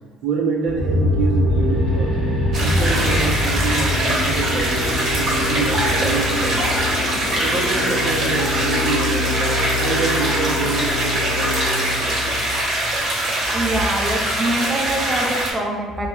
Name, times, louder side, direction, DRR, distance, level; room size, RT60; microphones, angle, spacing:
voice 1, 0.2-2.2 2.6-6.7 7.3-12.4, right 4 dB, 65° right, 1 dB, 0.6 m, -27 dB
sound 1, 0.7-12.6, left 2 dB, 65° left, 0.4 m, -27 dB
sound 2, 0.8-10.0, left 1 dB, 25° left, 1.5 m, -25 dB
sound 3, 2.5-15.5, right 1 dB, 45° right, 1.0 m, -23 dB
voice 2, 13.5-16.1, right 1 dB, 20° right, 0 dB, 0.4 m, -24 dB
5.0 x 2.2 x 2.2 m, 1.3 s
cardioid pair, 130°, 0 cm